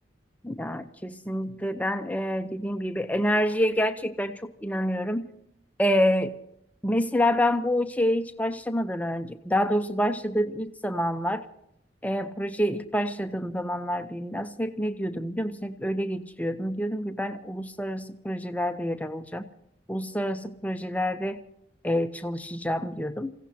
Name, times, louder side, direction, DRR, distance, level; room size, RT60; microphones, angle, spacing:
voice 1, 0.4-5.3 5.8-6.3 6.8-11.5 12.0-19.5 19.9-21.4 21.8-23.3, equal, 10° left, 8 dB, 0.7 m, -27 dB
27.5 x 16.5 x 2.9 m, 0.78 s
head